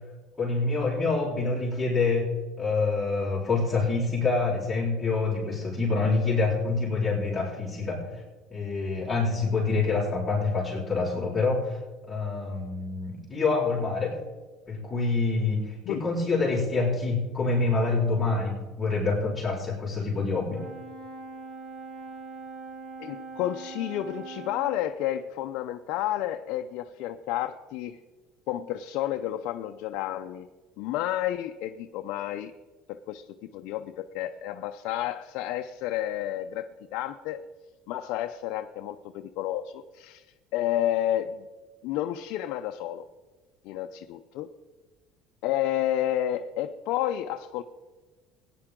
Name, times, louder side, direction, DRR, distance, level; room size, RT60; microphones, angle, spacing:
voice 1, 0.4-2.3 2.6-8.1 8.5-11.8 12.0-14.2 14.7-20.6, left 3 dB, 10° left, -8 dB, 4.1 m, -26 dB
Brass instrument, 20.5-24.9, right 4 dB, 20° right, 1.5 m, -42 dB
voice 2, 23.0-28.0 28.5-30.5 30.8-32.5 32.9-37.4 37.9-40.3 40.5-41.5 41.8-43.0 43.6-44.5 45.4-47.6, left 12 dB, 70° left, 6 dB, 0.5 m, -31 dB
17.5 x 9.8 x 3.8 m, 1.3 s
cardioid pair, 125°, 0 cm